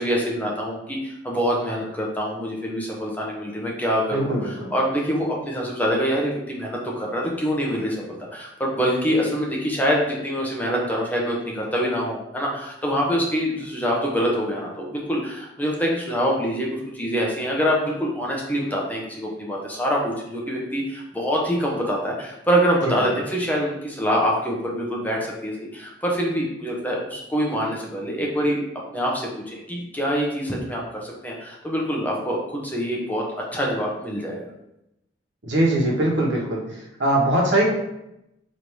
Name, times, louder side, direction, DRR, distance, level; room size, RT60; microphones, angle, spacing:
voice 1, 0.0-8.0 8.3-28.6 28.9-33.2 33.5-34.5, equal, 10° left, -2 dB, 0.7 m, -25 dB
voice 2, 4.1-4.7 22.8-22.9 35.4-36.6 37.0-37.7, right 1 dB, 80° right, -2 dB, 1.1 m, -21 dB
3.3 x 2.7 x 4.5 m, 0.85 s
head